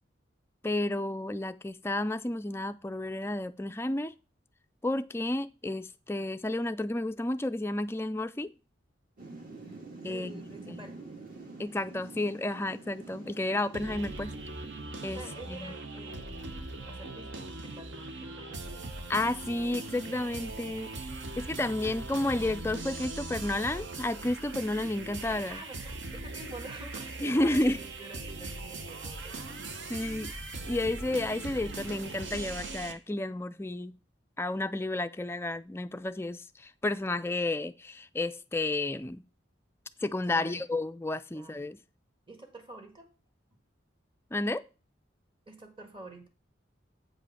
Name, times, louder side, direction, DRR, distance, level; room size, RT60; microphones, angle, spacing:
voice 1, 0.6-4.1 4.8-8.5 10.0-10.8 11.6-14.3 15.0-15.2 15.5-15.7 19.1-20.9 21.4-25.6 27.2-27.8 29.9-30.3 30.6-33.9 34.4-39.2 40.0-41.8 44.3-44.6, left 2 dB, 10° left, 0.3 m, -31 dB
Thunder / Rain, 9.2-15.6, right 3 dB, 45° right, 1.9 m, -48 dB
voice 2, 10.1-11.0 15.1-18.9 25.5-29.6 40.3-40.7 41.3-41.7 42.3-43.1 45.5-46.3, right 2 dB, 25° right, 1.6 m, -48 dB
sound 1, 13.7-32.9, right 2 dB, 70° right, 1.1 m, -40 dB
8.3 x 5.1 x 5.7 m
head